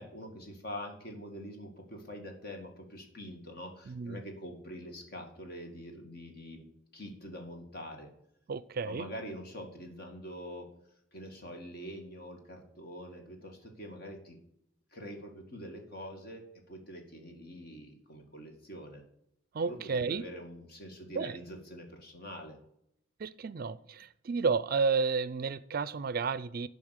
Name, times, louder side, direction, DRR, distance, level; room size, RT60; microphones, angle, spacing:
voice 1, 0.0-6.7 6.9-8.1 8.8-10.7 11.1-14.4 14.9-19.0 19.6-22.6, equal, 50° left, 2.1 m, -45 dB
voice 2, 3.9-4.2 8.5-9.1 19.5-20.3 21.2-21.4 23.2-26.7, right 5 dB, 50° right, 0.4 m, -31 dB
11.0 x 5.3 x 6.5 m
head